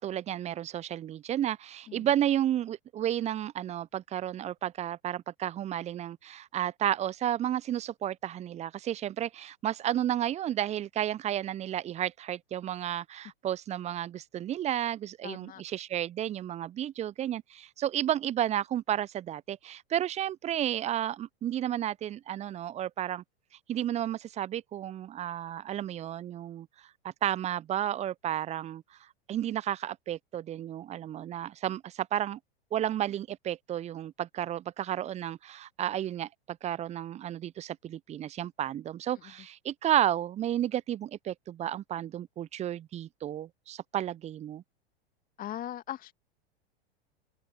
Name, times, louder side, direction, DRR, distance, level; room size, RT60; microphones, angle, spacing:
voice 1, 0.0-23.2 23.7-26.7 27.0-28.8 29.3-32.4 32.7-44.6, right 11 dB, 20° right, 0.9 m, -32 dB
voice 2, 15.2-15.6 45.4-46.1, left 12 dB, 25° left, 2.0 m, -39 dB
figure-of-eight pair, 95°, 32 cm